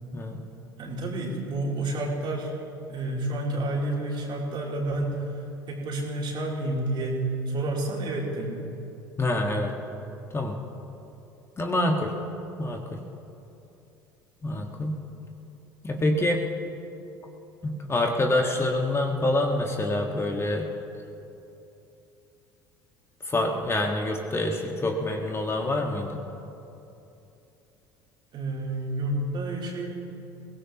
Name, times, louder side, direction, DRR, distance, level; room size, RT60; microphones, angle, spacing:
voice 1, 0.8-2.6 2.9-5.4 5.7-8.6 28.3-30.0, right 2 dB, 45° right, -2 dB, 3.5 m, -30 dB
voice 2, 9.2-9.7 10.3-10.6 11.6-12.1 12.6-13.0 14.4-15.0 15.8-16.4 17.6-20.7 23.2-26.2, left 1 dB, 25° left, 2 dB, 1.7 m, -26 dB
22.5 x 17.5 x 3.1 m, 2.9 s
hypercardioid pair, 65°, 11 cm